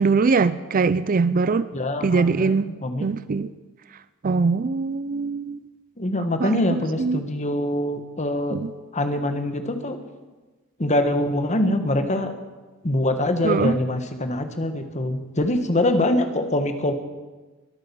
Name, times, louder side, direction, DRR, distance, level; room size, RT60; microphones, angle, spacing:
voice 1, 0.0-1.7 2.0-2.7 3.0-3.5 4.2-5.6 6.4-7.2 8.5-8.7 13.4-13.8, right 4 dB, 40° right, 16 dB, 0.4 m, -22 dB
voice 2, 1.7-3.1 6.0-8.6 8.9-10.0 10.8-12.3 12.8-16.9, left 1 dB, 30° left, 8 dB, 1.4 m, -24 dB
22.0 x 9.0 x 7.0 m, 1.3 s
head